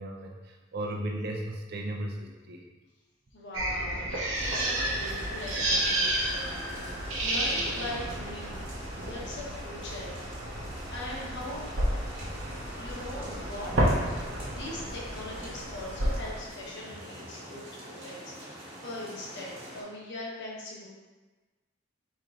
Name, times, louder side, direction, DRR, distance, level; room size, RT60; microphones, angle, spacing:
voice 1, 0.0-2.6, right 1 dB, 55° right, 1 dB, 0.6 m, -35 dB
voice 2, 3.3-8.6 9.0-10.1 10.5-11.7 12.6-14.1 14.5-20.9, left 1 dB, 60° left, -4 dB, 1.1 m, -41 dB
sound 1, 3.5-16.4, right 1 dB, 90° right, 0.9 m, -31 dB
sound 2, 4.3-19.8, right 1 dB, 30° right, 1.5 m, -44 dB
4.8 x 4.4 x 2.5 m, 1.2 s
head